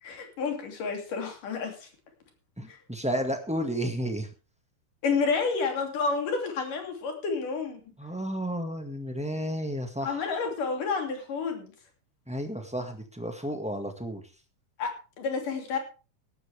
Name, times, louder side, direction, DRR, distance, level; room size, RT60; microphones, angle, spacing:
voice 1, 0.0-1.9 2.7-2.8 5.0-7.9 10.0-11.7 14.8-15.8, left 5 dB, 80° left, 4 dB, 4.5 m, -30 dB
voice 2, 2.6-4.3 8.0-10.3 12.3-14.2, equal, 5° right, 5 dB, 0.9 m, -32 dB
17.5 x 12.0 x 3.5 m, 0.34 s
omnidirectional pair, 3.7 m